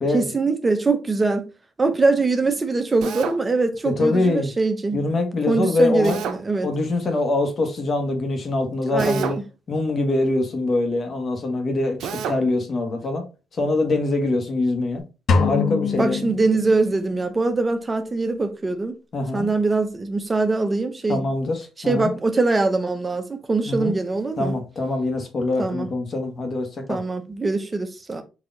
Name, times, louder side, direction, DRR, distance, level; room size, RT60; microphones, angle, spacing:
voice 1, 0.1-1.5 1.8-5.0 5.5-6.7 8.9-9.4 16.0-18.9 19.3-21.3 21.9-24.5 25.6-25.9 26.9-28.2, right 3 dB, 25° right, 0.6 m, -22 dB
Drill, 3.0-3.4 6.0-6.4 9.0-9.4 12.0-12.4, right 7 dB, 80° right, 0.5 m, -29 dB
voice 2, 3.8-4.5 4.9-6.2 6.6-9.4 9.7-13.2 13.6-15.0 15.4-16.2 19.1-19.5 21.1-22.1 23.7-23.9 24.4-27.0, left 2 dB, 45° left, 1.3 m, -24 dB
sound 1, 15.3-17.3, left 5 dB, 65° left, 0.7 m, -23 dB
4.0 x 2.8 x 3.8 m
cardioid pair, 90°, 0 cm